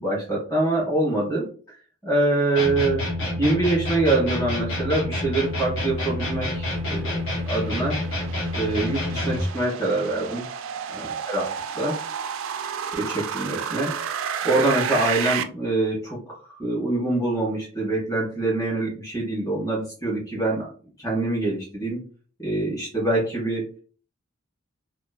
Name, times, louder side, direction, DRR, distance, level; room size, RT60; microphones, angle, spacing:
voice 1, 0.0-1.8 2.0-3.1 3.4-7.2 7.4-8.0 8.5-10.4 10.9-12.0 12.9-20.7 21.0-22.0 22.4-23.7, right 2 dB, 15° left, -6 dB, 1.4 m, -25 dB
sound 1, 2.5-9.5, left 1 dB, 65° left, 1.3 m, -28 dB
sound 2, 5.9-15.4, right 8 dB, 70° right, 0.3 m, -32 dB
3.0 x 2.9 x 2.4 m, 0.40 s
head